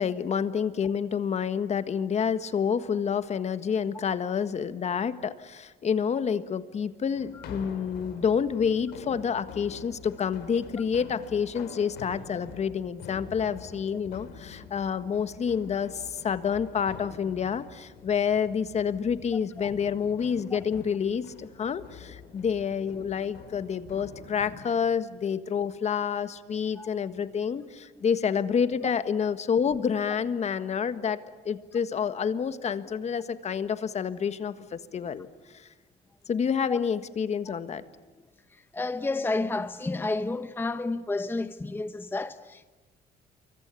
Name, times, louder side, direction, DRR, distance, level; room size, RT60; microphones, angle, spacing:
voice 1, 0.0-31.2 31.4-35.3 35.5-35.7 36.3-37.8, left 7 dB, 40° left, 1.5 m, -28 dB
sound 1, 7.1-24.6, left 6 dB, 80° left, 4.2 m, -46 dB
voice 2, 38.7-42.6, left 2 dB, 10° left, 0.8 m, -31 dB
28.0 x 24.0 x 8.4 m
cardioid pair, 110°, 17 cm